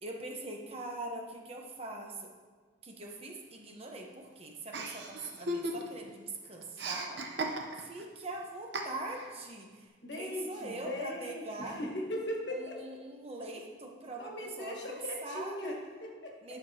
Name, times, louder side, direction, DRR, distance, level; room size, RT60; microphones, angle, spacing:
voice 1, 0.0-2.3 2.8-7.2 7.8-9.7 10.2-11.8 12.5-15.8 16.4-16.6, right 2 dB, 30° right, 1 dB, 0.9 m, -42 dB
Chuckle chortle, 4.7-6.1 6.4-8.0 8.7-9.3, right 1 dB, 60° right, 0.8 m, -37 dB
voice 2, 10.0-13.0 14.2-16.4, left 1 dB, 60° left, 0 dB, 1.3 m, -39 dB
10.5 x 6.6 x 2.8 m, 1.5 s
head